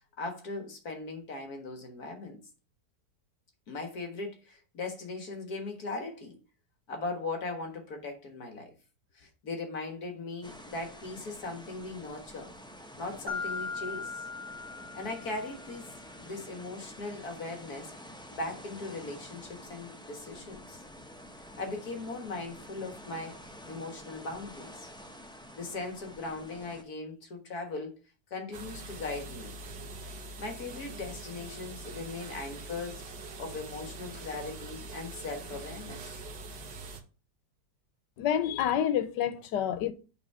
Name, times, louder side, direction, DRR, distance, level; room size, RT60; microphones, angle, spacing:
voice 1, 0.2-2.4 3.7-6.4 6.9-8.7 9.1-12.5 13.0-14.3 14.9-15.9 16.2-17.9 18.3-20.8 21.6-24.9 25.6-28.0 28.3-29.5 30.4-33.1 33.4-36.1, left 3 dB, 65° left, 2.0 m, -39 dB
sound 1, 10.4-26.8, equal, 5° left, 0.4 m, -49 dB
Mallet percussion, 13.3-15.8, left 4 dB, 15° right, 1.8 m, -38 dB
sound 2, 28.5-37.0, right 2 dB, 80° right, 1.7 m, -43 dB
voice 2, 38.2-39.9, left 10 dB, 85° left, 1.4 m, -28 dB
8.2 x 3.6 x 5.5 m
omnidirectional pair, 1.8 m